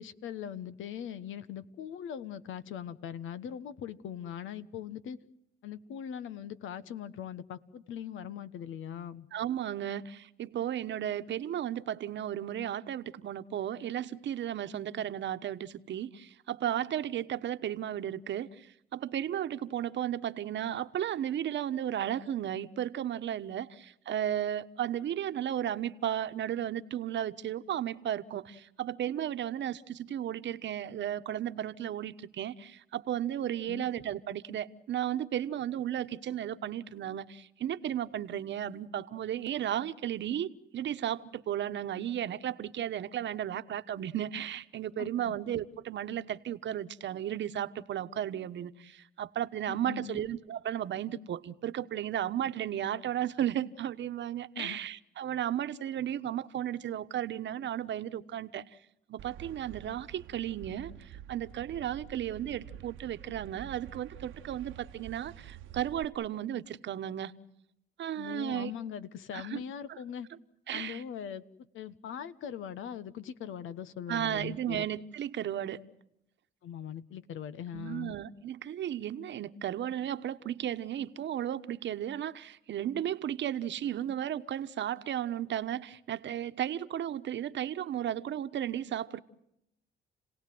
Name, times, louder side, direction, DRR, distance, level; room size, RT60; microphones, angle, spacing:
voice 1, 0.0-5.2 5.6-9.3 33.7-33.8 45.0-45.3 49.7-50.2 54.6-54.8 68.2-70.3 70.7-71.5 71.7-74.8 76.6-78.2, left 9 dB, 80° left, 1.3 m, -41 dB
voice 2, 9.3-58.8 59.1-67.3 68.0-68.7 69.3-69.6 69.9-70.0 70.7-71.0 74.1-75.8 77.7-89.2, right 11 dB, 65° right, 1.2 m, -34 dB
sound 1, 59.2-66.0, right 11 dB, 85° right, 1.2 m, -48 dB
29.5 x 18.0 x 7.9 m
cardioid pair, 90°, 20 cm